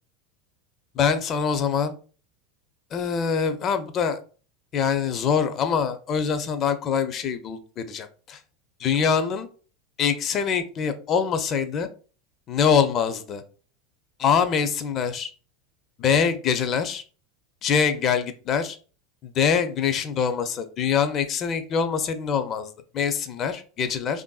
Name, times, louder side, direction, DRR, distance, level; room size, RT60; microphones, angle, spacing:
voice 1, 0.9-1.9 2.9-4.2 4.7-8.4 8.8-9.5 10.0-11.9 12.5-13.4 14.2-15.3 16.0-17.0 17.6-18.8 19.2-24.2, left 6 dB, 40° left, 9 dB, 0.5 m, -24 dB
3.4 x 2.5 x 2.3 m, 0.39 s
hypercardioid pair, 95°, 0 cm